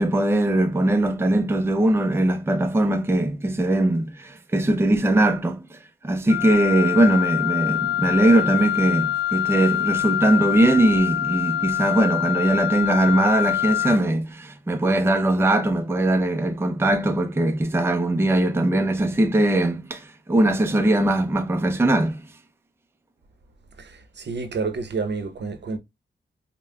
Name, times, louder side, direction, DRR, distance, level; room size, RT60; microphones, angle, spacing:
voice 1, 0.0-5.8 6.0-22.2, right 1 dB, 10° right, 0.5 m, -20 dB
Wind instrument woodwind instrument, 6.3-14.1, left 12 dB, 60° left, 0.7 m, -25 dB
voice 2, 23.8-25.8, right 4 dB, 65° right, 0.8 m, -29 dB
5.4 x 2.2 x 2.3 m
cardioid pair, 70°, 20 cm